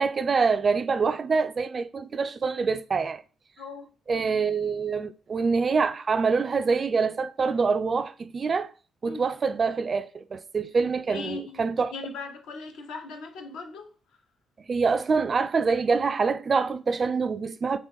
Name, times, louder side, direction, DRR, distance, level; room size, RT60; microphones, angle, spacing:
voice 1, 0.0-3.2 4.1-8.7 9.0-11.9 14.7-17.8, right 5 dB, 40° right, 0.3 m, -25 dB
voice 2, 11.1-13.9, left 3 dB, 85° left, 0.8 m, -38 dB
2.9 x 2.9 x 3.5 m
cardioid pair, 90°, 0 cm